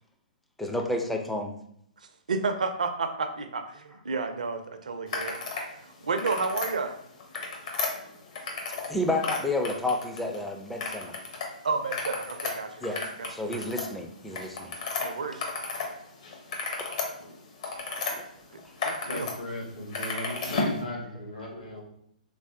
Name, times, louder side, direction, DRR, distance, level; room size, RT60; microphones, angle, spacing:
voice 1, 0.6-1.6 7.3-7.4 8.9-11.1 12.8-13.0 13.3-14.7 16.6-16.9 18.1-18.2, left 2 dB, 5° left, 2 dB, 0.4 m, -31 dB
voice 2, 2.3-5.4 5.7-7.0 11.6-13.3 15.0-15.5 18.5-19.3, right 4 dB, 65° right, 7 dB, 0.5 m, -31 dB
sound 1, 5.1-5.7 6.0-6.7 7.2-8.9 9.2-10.4 10.8-11.5 11.8-15.9 16.2-18.1 18.6-19.3 19.6-20.8, left 4 dB, 50° left, 0.8 m, -33 dB
voice 3, 19.1-21.8, left 1 dB, 70° left, -2 dB, 1.3 m, -37 dB
3.5 x 3.3 x 2.6 m, 0.70 s
figure-of-eight pair, 115°, 4 cm